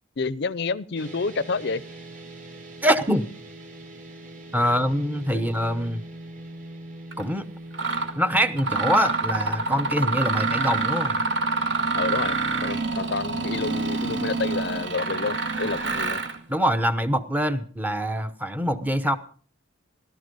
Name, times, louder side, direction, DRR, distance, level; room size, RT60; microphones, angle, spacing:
voice 1, 0.2-1.8 4.6-4.7 11.9-16.2, left 4 dB, 55° left, 20 dB, 0.6 m, -29 dB
sound 1, 1.0-17.3, right 1 dB, 40° right, 3.0 m, -43 dB
voice 2, 2.8-3.3 4.5-6.0 7.2-7.5 8.2-11.2 16.5-19.2, equal, 10° right, 9 dB, 0.9 m, -24 dB
Mechanisms, 7.1-7.2 7.7-8.1 8.6-16.4, right 3 dB, 60° right, 1.8 m, -27 dB
16.5 x 13.0 x 5.3 m, 0.43 s
head